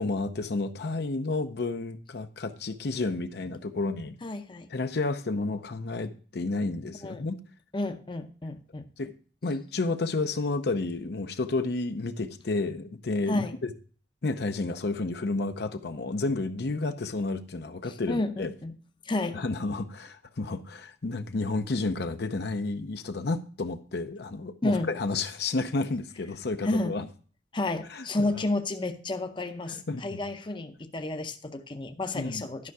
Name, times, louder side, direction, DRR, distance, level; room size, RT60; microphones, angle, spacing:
voice 1, 0.0-4.1 4.7-7.4 9.0-9.1 9.4-13.7 14.2-18.5 19.3-27.0 27.9-28.3 29.7-30.2 32.1-32.5, left 3 dB, 65° left, 8 dB, 0.7 m, -31 dB
voice 2, 4.2-4.7 7.0-7.2 7.7-8.9 13.3-13.5 17.8-18.7 19.0-19.4 24.6-24.9 26.6-26.9 27.5-32.7, left 2 dB, 25° left, 7 dB, 0.7 m, -31 dB
12.0 x 5.6 x 4.8 m, 0.41 s
head